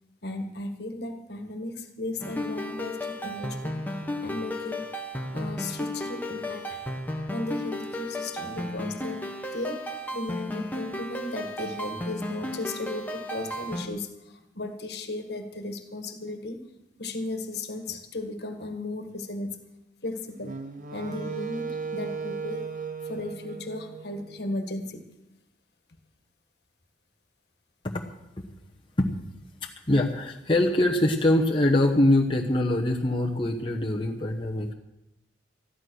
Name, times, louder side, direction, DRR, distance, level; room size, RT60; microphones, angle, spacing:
voice 1, 0.2-4.9 5.3-6.8 7.3-16.6 17.0-19.6 20.0-20.6 20.9-22.7 23.0-25.1, left 2 dB, 60° left, 6 dB, 1.7 m, -35 dB
sound 1, 2.2-13.9, left 1 dB, 10° left, 1.2 m, -34 dB
Wind instrument woodwind instrument, 20.4-24.6, right 5 dB, 45° right, 1.1 m, -36 dB
voice 2, 29.6-34.7, left 1 dB, 30° left, -1 dB, 1.1 m, -23 dB
14.0 x 12.0 x 6.4 m, 0.88 s
head